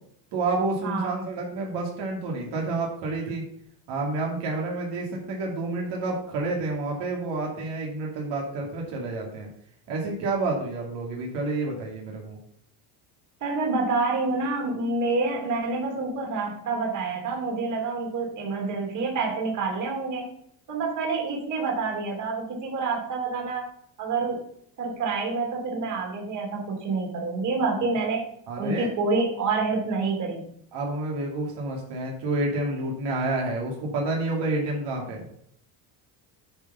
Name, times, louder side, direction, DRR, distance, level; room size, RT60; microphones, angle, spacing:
voice 1, 0.3-3.4 3.9-9.5 9.9-12.4 28.5-28.9 30.7-35.2, right 2 dB, 70° right, -1 dB, 2.7 m, -29 dB
voice 2, 0.8-1.2 13.4-20.3 20.7-23.6 24.0-24.4 24.8-28.2 28.6-30.4, right 3 dB, 45° right, -1 dB, 3.0 m, -27 dB
9.9 x 4.7 x 5.6 m, 0.69 s
cardioid pair, 140°, 44 cm